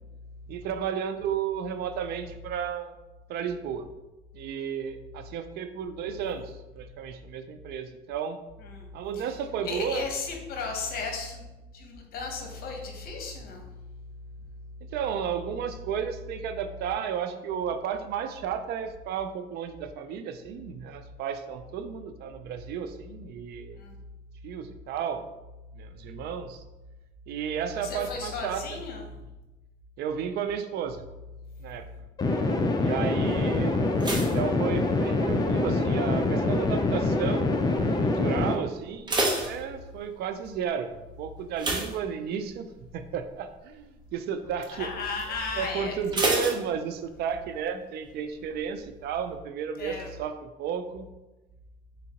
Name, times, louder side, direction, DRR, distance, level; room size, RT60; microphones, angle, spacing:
voice 1, 0.5-2.9 3.3-3.9 4.3-8.4 8.9-10.0 14.9-23.8 24.4-25.3 25.7-26.6 27.3-28.8 30.0-31.0 31.6-31.9 32.8-33.8 34.1-37.6 38.0-39.2 39.4-44.9 45.5-51.1, right 7 dB, 75° right, 9 dB, 0.4 m, -33 dB
voice 2, 9.6-11.5 11.7-14.1 14.4-14.5 23.8-24.0 27.8-29.1 33.2-33.5 44.7-46.0 49.7-50.1, left 4 dB, 65° left, 2 dB, 0.9 m, -35 dB
sound 1, 32.2-38.5, left 2 dB, 25° left, 0.5 m, -25 dB
sound 2, 34.0-35.5 35.7-36.2 36.8-37.2 37.5-37.6 38.0-38.1 38.7-40.3 41.5-42.7 43.1-43.3 43.7-43.8 46.1-47.3 47.6-47.7, right 2 dB, 25° right, 0.9 m, -30 dB
3.9 x 3.6 x 2.9 m, 1.1 s
cardioid pair, 110°, 17 cm